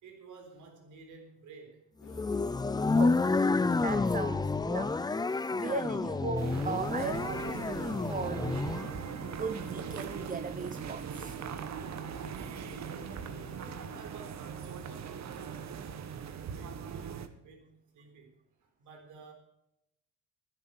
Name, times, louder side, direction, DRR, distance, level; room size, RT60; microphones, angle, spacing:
voice 1, 0.0-1.8 5.5-5.6 13.2-18.3 18.6-19.3, right 4 dB, 80° right, 4 dB, 4.0 m, -53 dB
sound 1, 2.0-14.0, left 5 dB, 65° left, 3.8 m, -52 dB
sound 2, 2.1-8.9, left 3 dB, 15° left, 0.5 m, -29 dB
voice 2, 3.0-3.3 3.8-8.5 9.2-11.4, right 5 dB, 25° right, 11 dB, 0.7 m, -38 dB
sound 3, 6.4-17.3, right 7 dB, 60° right, 1.3 m, -40 dB
11.0 x 10.0 x 7.8 m, 0.82 s
cardioid pair, 90°, 30 cm